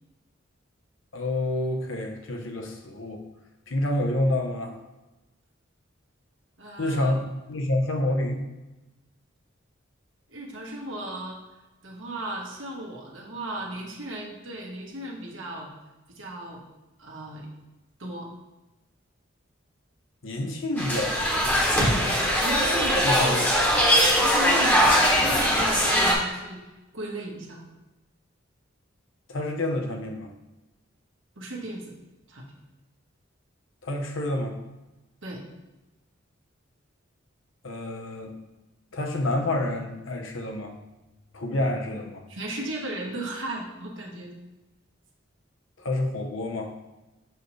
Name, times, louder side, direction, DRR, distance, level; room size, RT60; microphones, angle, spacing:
voice 1, 1.1-3.3 3.7-4.7 6.8-7.2 7.5-8.4 20.2-21.4 23.0-23.4 29.3-30.3 33.8-34.6 37.6-38.4 38.9-40.7 41.3-42.2 45.8-46.7, left 1 dB, 80° left, 3 dB, 0.9 m, -28 dB
voice 2, 6.6-7.2 10.3-11.4 11.8-15.7 16.1-16.6 17.0-17.5 18.0-18.3 21.8-23.3 24.2-26.6 26.9-27.6 31.4-31.9 32.3-32.4 35.2-35.4 42.3-44.3, right 1 dB, 75° right, -1 dB, 1.4 m, -35 dB
sound 1, 20.8-26.1, equal, 10° left, 1.0 m, -21 dB
6.3 x 4.7 x 3.2 m, 1.0 s
head